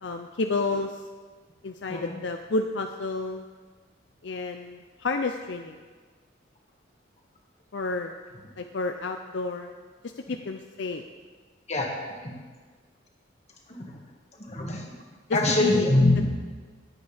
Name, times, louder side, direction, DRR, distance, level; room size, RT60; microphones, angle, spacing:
voice 1, 0.0-1.0 1.6-3.4 4.2-5.8 7.7-8.1 8.6-9.7 10.3-11.0 15.5-15.9 16.2-16.3, left 3 dB, 65° left, 5 dB, 0.5 m, -30 dB
voice 2, 11.7-12.3 13.7-13.8 14.4-14.9 15.3-16.3, left 2 dB, 35° left, 0 dB, 1.8 m, -24 dB
20.5 x 8.1 x 3.5 m, 1.5 s
head